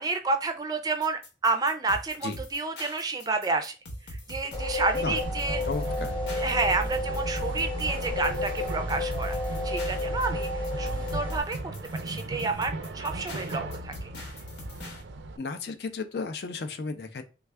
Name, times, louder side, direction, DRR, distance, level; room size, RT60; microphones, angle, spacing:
voice 1, 0.0-3.7 4.3-5.6 6.4-9.4 9.6-11.6 12.0-13.9, right 3 dB, 20° right, 6 dB, 0.4 m, -29 dB
sound 1, 1.0-15.0, left 1 dB, 80° left, 1.0 m, -42 dB
sound 2, 4.5-11.4, left 1 dB, 30° left, 0.8 m, -31 dB
sound 3, 5.0-15.4, right 2 dB, 85° right, 0.5 m, -38 dB
voice 2, 5.6-6.2 15.4-17.2, left 4 dB, 65° left, 9 dB, 0.4 m, -34 dB
3.3 x 2.3 x 3.2 m, 0.32 s
head